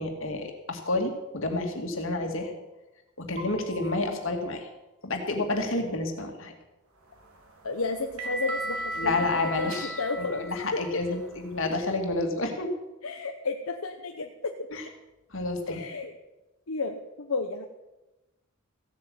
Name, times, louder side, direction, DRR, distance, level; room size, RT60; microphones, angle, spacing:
voice 1, 0.0-2.5 3.2-4.7 5.0-6.5 9.0-12.7 14.7-14.8 15.3-15.8, left 2 dB, 65° left, 4 dB, 2.3 m, -30 dB
Piano, 3.4-5.4, right 2 dB, 35° right, 2.2 m, -47 dB
sound 1, 7.1-11.9, right 1 dB, 90° right, 3.2 m, -37 dB
voice 2, 7.6-10.4 10.7-10.8 13.0-14.5 15.7-16.1 16.7-17.7, left 3 dB, 85° left, 4 dB, 1.0 m, -32 dB
16.0 x 8.4 x 7.8 m, 1.0 s
head